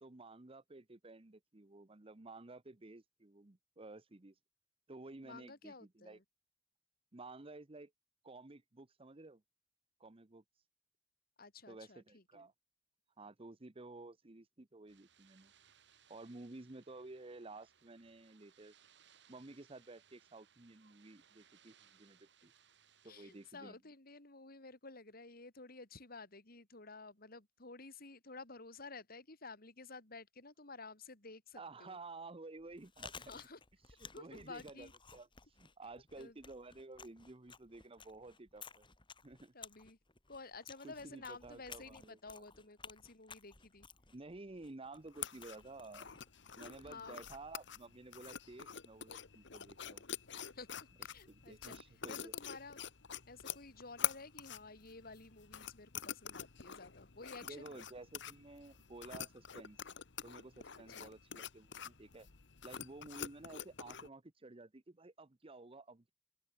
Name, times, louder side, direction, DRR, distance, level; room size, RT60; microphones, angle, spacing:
voice 1, 0.0-4.4 4.9-6.2 7.1-7.9 8.2-9.4 10.0-10.4 11.7-12.5 13.2-15.5 16.1-18.7 19.3-22.5 23.0-23.8 31.5-33.3 34.0-35.3 35.5-38.9 39.2-39.5 40.8-42.4 44.1-46.1 46.6-50.1 51.3-52.3 57.4-59.8 60.2-62.3 62.6-66.1, right 2 dB, 30° right, 0.9 m, -53 dB
voice 2, 5.2-6.2 11.4-12.4 23.0-32.0 33.2-33.6 34.1-34.9 35.9-36.4 39.5-40.0 40.3-43.9 46.8-47.2 50.5-50.7 51.0-51.8 52.1-52.8 53.3-57.8 60.7-61.1, left 3 dB, 50° left, 3.6 m, -52 dB
sound 1, 14.9-23.5, right 8 dB, 65° right, 5.8 m, -68 dB
Chewing mastication, 32.6-47.7, left 5 dB, 25° left, 3.1 m, -57 dB
sound 2, 45.1-64.1, left 9 dB, 70° left, 1.3 m, -47 dB
open air
head